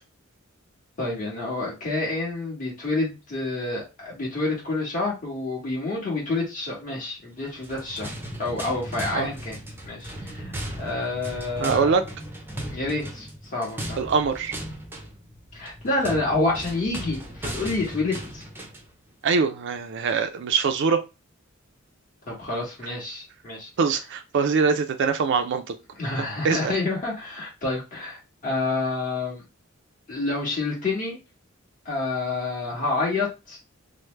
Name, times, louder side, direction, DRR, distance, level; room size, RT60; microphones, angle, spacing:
voice 1, 1.0-8.1 8.4-9.6 9.9-11.9 12.7-14.0 15.5-18.5 22.2-23.7 25.9-29.4 30.1-31.2 31.8-33.6, left 2 dB, 40° left, 1.4 m, -28 dB
sound 1, 7.5-18.9, right 1 dB, 10° right, 0.5 m, -37 dB
voice 2, 11.6-12.0 14.0-14.5 19.2-21.0 23.8-25.7 26.4-26.7, right 5 dB, 60° right, 0.4 m, -23 dB
3.2 x 2.0 x 3.2 m
head